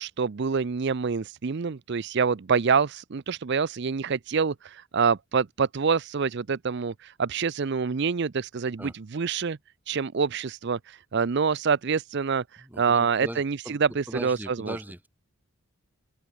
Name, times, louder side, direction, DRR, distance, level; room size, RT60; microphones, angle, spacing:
voice 1, 0.0-9.6 9.9-14.8, right 5 dB, 50° right, 0.5 m, -26 dB
voice 2, 12.6-13.8 14.1-15.1, equal, 10° right, 3.8 m, -39 dB
head